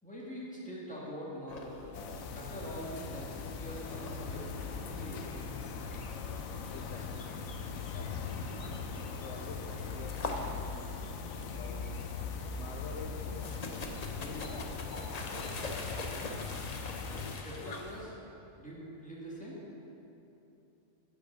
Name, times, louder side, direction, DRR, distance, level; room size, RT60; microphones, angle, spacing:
voice 1, 0.0-1.8 2.3-4.5 4.9-5.3 17.3-18.2 18.6-19.6, equal, 5° left, -6 dB, 1.9 m, -43 dB
sound 1, 1.5-18.0, left 2 dB, 40° left, 0.7 m, -45 dB
sound 2, 1.9-17.4, left 5 dB, 90° left, 1.1 m, -40 dB
voice 2, 6.7-7.3 7.9-8.4 9.0-10.6 11.4-11.9 12.5-13.8 14.2-15.4, left 4 dB, 65° left, 0 dB, 1.0 m, -47 dB
8.4 x 5.7 x 8.0 m, 2.9 s
omnidirectional pair, 1.4 m